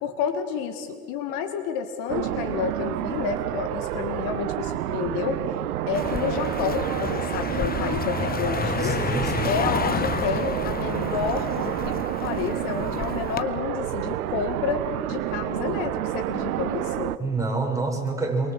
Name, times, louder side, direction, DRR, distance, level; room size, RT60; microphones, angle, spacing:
voice 1, 0.0-5.4 5.9-9.0 9.4-17.2, left 6 dB, 60° left, 8 dB, 2.2 m, -30 dB
sound 1, 2.1-17.2, right 13 dB, 70° right, 1.1 m, -29 dB
Car passing by, 5.9-13.4, left 6 dB, 20° left, 1.1 m, -31 dB
voice 2, 8.8-9.6 17.2-18.5, right 3 dB, 5° right, 0 dB, 6.5 m, -27 dB
28.0 x 23.5 x 7.7 m, 2.2 s
hypercardioid pair, 80°, 46 cm